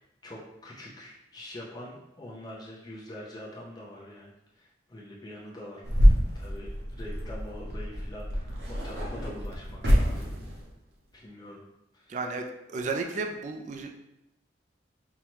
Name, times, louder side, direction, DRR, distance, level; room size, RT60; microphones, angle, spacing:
voice 1, 0.2-10.3 11.1-11.6 11.9-12.2, left 1 dB, 20° left, -4 dB, 0.6 m, -44 dB
sound 1, 5.8-10.7, equal, 60° right, 0.8 m, -26 dB
voice 2, 12.1-12.4 12.7-13.9, right 3 dB, 40° right, 4 dB, 0.3 m, -32 dB
5.4 x 2.2 x 3.0 m, 0.88 s
head